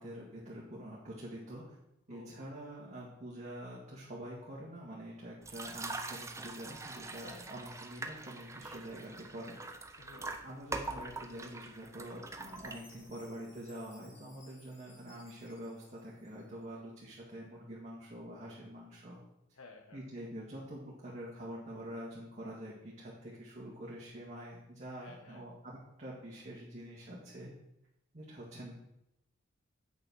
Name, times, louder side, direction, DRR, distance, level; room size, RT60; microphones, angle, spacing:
voice 1, 0.0-1.8 2.1-9.6 10.4-19.2 19.9-27.5 28.1-28.7, equal, 35° right, -5 dB, 2.1 m, -46 dB
voice 2, 2.1-2.5 7.2-7.4 10.0-10.5 19.5-20.0 25.0-25.4, left 3 dB, 90° left, 4 dB, 1.1 m, -54 dB
sound 1, 5.4-13.2, right 3 dB, 15° right, 0.7 m, -43 dB
Chime, 12.4-16.8, left 3 dB, 60° left, 2.6 m, -62 dB
8.3 x 6.6 x 6.2 m, 0.81 s
head